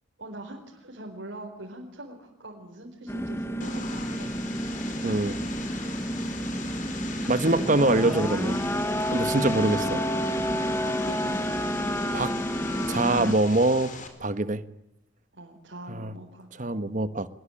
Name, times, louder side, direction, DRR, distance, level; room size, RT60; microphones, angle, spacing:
voice 1, 0.2-4.5 5.4-5.7 7.4-7.9 9.7-10.1 10.7-11.3 13.5-13.7 15.3-16.5, right 1 dB, 65° right, -2 dB, 4.5 m, -42 dB
sound 1, 3.1-13.3, equal, 15° left, 1.1 m, -29 dB
Vehicle, 3.6-14.1, left 4 dB, 40° left, 4.1 m, -40 dB
voice 2, 5.0-5.4 7.3-8.6 9.1-10.0 12.1-12.3 12.9-13.9 14.2-14.6 15.9-16.1 16.6-17.3, right 2 dB, 40° right, 13 dB, 1.3 m, -24 dB
25.0 x 21.0 x 8.8 m, 0.85 s
head